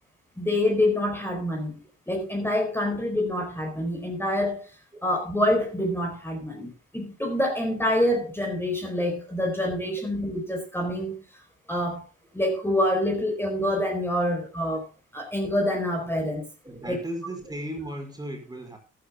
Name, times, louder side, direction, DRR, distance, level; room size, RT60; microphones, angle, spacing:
voice 1, 0.4-1.7 2.1-4.7 5.0-11.2 11.7-12.0 12.3-14.9 15.1-16.5 16.9-17.0, left 1 dB, 10° left, 2 dB, 4.4 m, -26 dB
voice 2, 16.6-18.8, right 1 dB, 15° right, 3 dB, 5.1 m, -36 dB
13.5 x 11.5 x 3.6 m, 0.29 s
cardioid pair, 90°, 30 cm